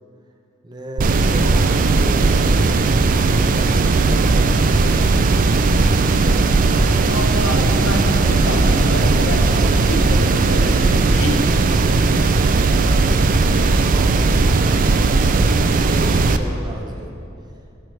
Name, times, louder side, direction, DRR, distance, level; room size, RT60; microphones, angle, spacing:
voice 1, 0.6-2.5 3.1-4.3 4.8-5.5 13.4-14.3 15.7-17.1, right 1 dB, 20° right, 1 dB, 0.7 m, -34 dB
sound 1, 1.0-16.4, right 3 dB, 40° right, 0.3 m, -16 dB
voice 2, 7.1-11.5, left 1 dB, 85° left, 3 dB, 0.9 m, -27 dB
13.0 x 6.2 x 3.3 m, 2.6 s
head